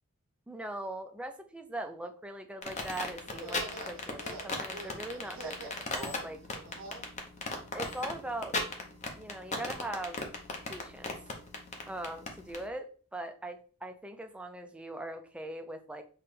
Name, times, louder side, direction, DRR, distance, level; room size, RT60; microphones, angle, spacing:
voice 1, 0.5-6.4 7.7-8.6 9.2-10.2 10.6-11.1 11.9-16.0, right 1 dB, 5° right, 6 dB, 0.4 m, -41 dB
sound 1, 2.6-12.6, left 3 dB, 35° left, 0.7 m, -36 dB
sound 2, 3.2-7.1, right 2 dB, 60° right, 0.8 m, -46 dB
5.9 x 2.2 x 3.2 m, 0.42 s
head